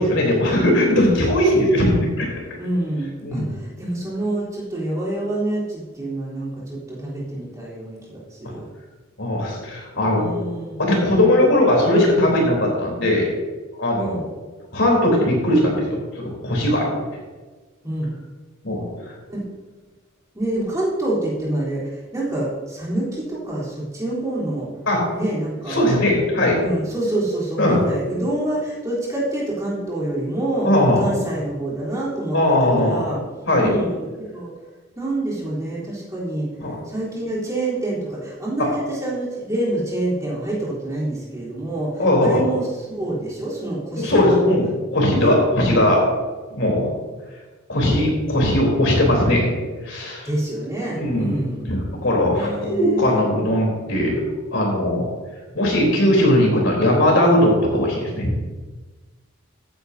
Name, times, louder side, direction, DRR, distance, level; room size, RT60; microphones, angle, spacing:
voice 1, 0.0-2.3 3.2-3.6 9.2-10.3 10.8-13.3 13.8-14.2 14.7-17.0 18.6-18.8 24.9-25.0 25.7-26.6 27.6-27.8 30.6-31.0 32.3-33.0 33.5-33.7 36.6-36.7 38.6-38.7 42.0-42.4 44.0-46.0 46.5-46.9 47.7-49.5 49.8-50.3 51.0-51.8 52.0-54.2 54.5-55.1 55.5-58.3, left 1 dB, 65° left, -1 dB, 3.7 m, -19 dB
voice 2, 2.6-8.6 10.2-10.8 14.0-14.2 17.8-18.1 19.3-19.5 20.3-21.8 22.1-24.7 25.1-25.8 26.6-30.7 31.0-32.4 32.8-33.2 33.6-34.5 34.9-36.5 36.9-44.6 45.1-45.3 50.2-51.7 52.3-53.2, right 1 dB, 15° right, -8 dB, 3.7 m, -27 dB
15.0 x 10.0 x 2.8 m, 1.3 s
head